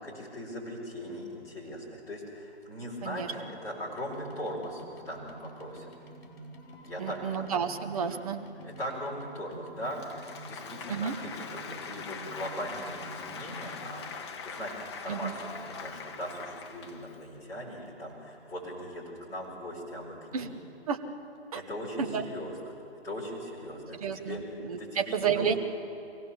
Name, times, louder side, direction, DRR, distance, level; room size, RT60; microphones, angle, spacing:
voice 1, 0.0-5.9 6.8-7.5 8.0-8.2 8.6-14.0 14.4-20.6 21.5-22.5 23.0-24.4 24.8-25.6, equal, 10° left, -7 dB, 4.5 m, -39 dB
voice 2, 3.0-3.3 7.0-8.4 10.9-11.2 15.1-15.3 20.3-20.5 20.9-21.0 21.5-21.6 22.0-22.3 23.9-25.5, right 6 dB, 35° right, 5 dB, 1.2 m, -31 dB
sound 1, 3.9-14.2 15.0-17.1 17.4-18.4 18.9-19.0 19.2-19.3 19.4-19.5 20.0-20.1 20.3-20.4, right 1 dB, 60° left, 4.4 m, -49 dB
Applause, 9.8-17.2, left 5 dB, 25° left, 1.0 m, -42 dB
24.0 x 17.0 x 7.1 m, 2.8 s
hypercardioid pair, 160°, 33 cm